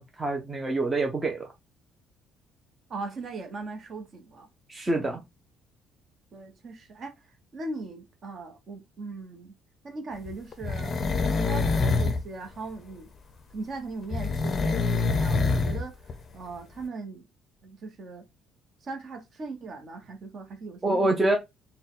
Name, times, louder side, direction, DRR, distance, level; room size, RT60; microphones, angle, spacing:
voice 1, 0.0-1.5 4.7-5.2 20.8-21.4, right 2 dB, 15° right, 0.6 m, -26 dB
voice 2, 2.9-4.5 5.0-5.2 6.3-7.2 7.5-9.5 9.8-10.9 11.2-13.1 13.5-15.9 16.3-17.2 17.6-18.2 18.8-21.1, right 3 dB, 40° right, 1.0 m, -39 dB
sound 1, 10.3-12.2 14.1-15.8 16.1-16.2, left 4 dB, 30° left, 0.6 m, -25 dB
4.1 x 2.2 x 3.6 m
cardioid pair, 145°, 0 cm